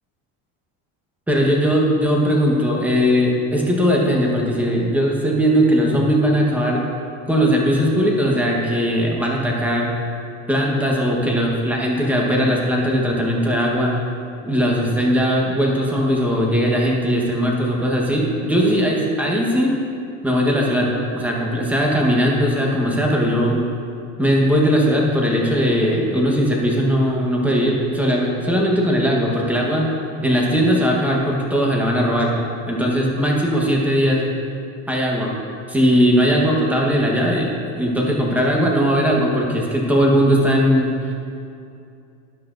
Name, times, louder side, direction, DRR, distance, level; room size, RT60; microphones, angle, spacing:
voice 1, 1.3-6.9 7.3-9.9 10.5-14.0 14.4-19.7 20.2-23.6 24.2-29.9 30.2-32.4 32.7-34.3 34.9-35.4 35.7-40.9, equal, 5° right, -2 dB, 1.1 m, -19 dB
12.5 x 11.0 x 2.6 m, 2.5 s
cardioid pair, 160°, 35 cm